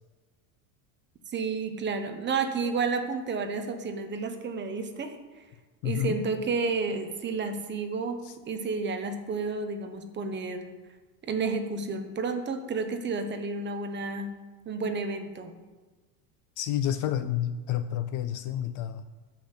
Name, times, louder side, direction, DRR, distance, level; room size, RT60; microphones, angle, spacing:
voice 1, 1.3-5.2 5.8-10.7 11.2-14.3 14.7-15.5, right 4 dB, 20° right, 7 dB, 1.0 m, -31 dB
voice 2, 5.8-6.2 8.2-8.4 16.6-19.0, left 10 dB, 40° left, 11 dB, 0.5 m, -29 dB
13.0 x 5.9 x 8.1 m, 1.3 s
supercardioid pair, 150°, 49 cm